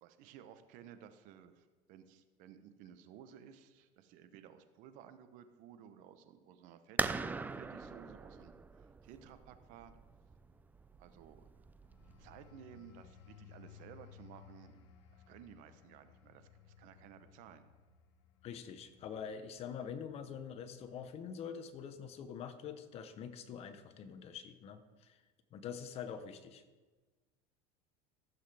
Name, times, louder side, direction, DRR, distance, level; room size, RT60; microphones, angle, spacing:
voice 1, 0.0-9.9 11.0-11.5 12.2-14.8 15.1-17.7, right 9 dB, 60° right, 10 dB, 0.9 m, -56 dB
sound 1, 7.0-12.5, right 4 dB, 10° right, 0.4 m, -41 dB
sound 2, 11.8-22.2 22.6-22.9, left 9 dB, 85° left, 1.2 m, -60 dB
voice 2, 18.4-25.2 25.5-26.6, left 7 dB, 45° left, 10 dB, 1.0 m, -45 dB
14.5 x 7.6 x 3.4 m, 1.3 s
supercardioid pair, 105°, 15 cm